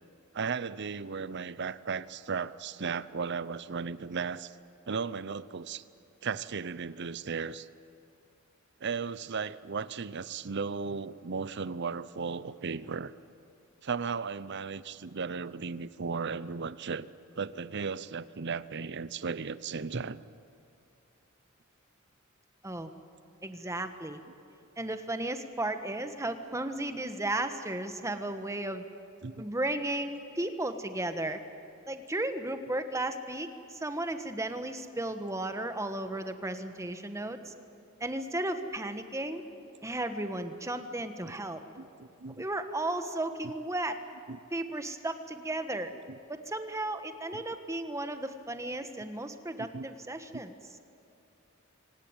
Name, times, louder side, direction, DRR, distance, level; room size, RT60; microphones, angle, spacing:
voice 1, 0.3-4.5 4.9-5.8 6.2-7.7 8.8-13.1 13.8-17.1 17.4-20.2 29.2-29.4 41.8-42.4 43.4-43.5 44.3-44.4 47.3-47.4 49.5-49.9 50.3-50.4, right 5 dB, 55° right, 17 dB, 0.7 m, -35 dB
voice 2, 23.4-24.2 24.8-28.9 29.4-31.4 31.9-37.5 38.0-39.4 39.8-41.6 42.4-44.0 44.5-45.9 46.3-50.5, right 1 dB, 15° right, 8 dB, 1.4 m, -34 dB
26.0 x 17.5 x 8.9 m, 2.8 s
head